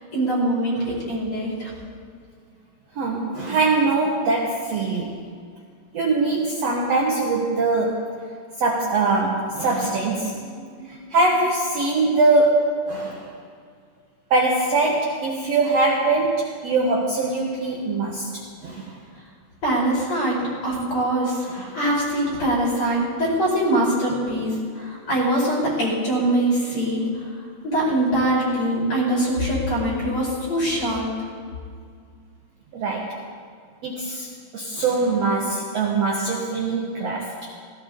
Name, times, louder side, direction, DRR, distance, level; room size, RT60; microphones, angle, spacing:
voice 1, 0.1-1.7 19.6-27.0 27.6-31.1, right 1 dB, 35° left, -5 dB, 5.5 m, -23 dB
voice 2, 2.9-5.2 5.9-8.2 8.6-13.3 14.3-18.3 18.6-18.9 21.4-21.8 32.7-33.2 33.8-34.3 34.5-37.3, right 3 dB, 65° right, -1 dB, 1.6 m, -22 dB
17.0 x 17.0 x 3.7 m, 2.1 s
omnidirectional pair, 4.7 m